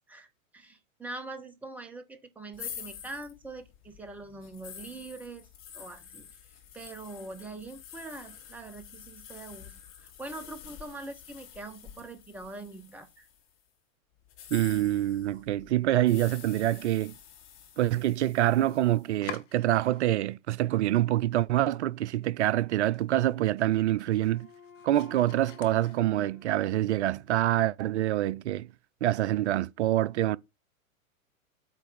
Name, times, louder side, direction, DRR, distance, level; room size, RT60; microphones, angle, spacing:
voice 1, 0.1-5.5 5.7-6.3 6.7-13.3, right 2 dB, 5° right, 0.8 m, -43 dB
sound 1, 2.5-13.5 14.2-19.1, left 8 dB, 30° left, 2.0 m, -48 dB
voice 2, 14.5-17.1 17.8-24.5 24.8-28.7 29.0-30.4, right 14 dB, 55° right, 0.5 m, -26 dB
Domestic sounds home sounds, 17.8-20.3 20.6-21.4 21.8-21.9 22.3-22.4 22.8-26.4, left 10 dB, 60° left, 1.1 m, -49 dB
Wind instrument woodwind instrument, 23.5-27.4, left 6 dB, 90° left, 2.3 m, -55 dB
8.2 x 3.2 x 4.6 m
figure-of-eight pair, 105°, 42 cm